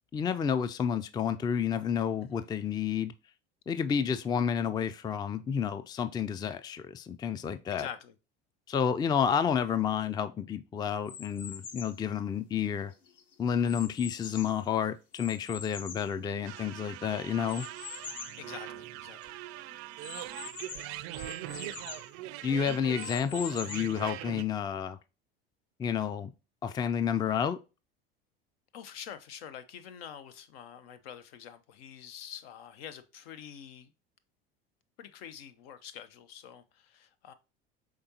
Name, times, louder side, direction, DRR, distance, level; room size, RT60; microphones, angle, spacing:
voice 1, 0.1-3.1 3.7-7.9 8.7-12.9 13.4-17.7 22.4-25.0 25.8-26.3 26.6-27.6, left 7 dB, 15° left, 0.3 m, -30 dB
voice 2, 7.7-8.1 13.6-13.8 18.4-19.3 21.7-21.8 28.7-33.9 35.0-37.3, left 9 dB, 75° left, 0.7 m, -46 dB
sound 1, 11.1-12.0 12.6-14.7 15.1-16.8 17.5-18.4 18.9-19.0 19.2-19.3 20.0-22.1 22.7-24.0, left 6 dB, 55° left, 1.1 m, -44 dB
sound 2, 16.4-24.4, right 14 dB, 55° right, 0.4 m, -42 dB
5.1 x 3.6 x 2.8 m
hypercardioid pair, 80°, 30 cm